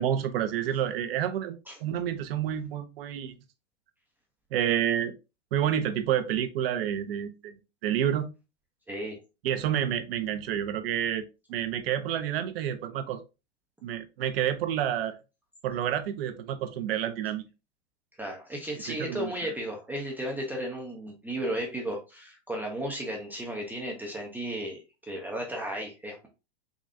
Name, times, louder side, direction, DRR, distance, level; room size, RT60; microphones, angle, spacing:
voice 1, 0.0-3.4 4.5-5.1 5.5-8.3 9.4-11.2 11.5-13.2 13.8-15.2 15.6-17.5 18.9-19.3, right 10 dB, 55° right, 9 dB, 0.6 m, -29 dB
voice 2, 8.9-9.2 18.2-26.3, right 1 dB, 5° right, -1 dB, 0.4 m, -34 dB
3.7 x 3.1 x 2.5 m, 0.28 s
hypercardioid pair, 120°, 35 cm